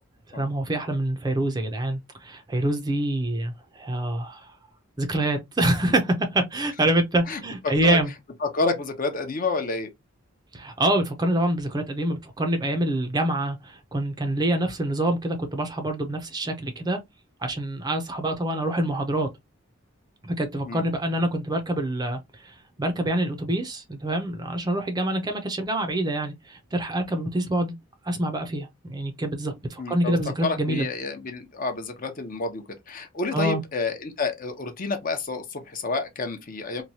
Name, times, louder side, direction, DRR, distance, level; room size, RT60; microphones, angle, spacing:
voice 1, 0.3-4.5 5.0-8.1 10.5-17.0 17.4-19.3 20.2-27.8 28.0-30.9 33.3-33.6, right 1 dB, 20° right, 0.5 m, -26 dB
voice 2, 7.3-8.0 8.4-9.9 20.6-20.8 29.8-30.1 30.4-36.8, left 3 dB, 40° left, 0.6 m, -29 dB
3.0 x 2.2 x 2.7 m
head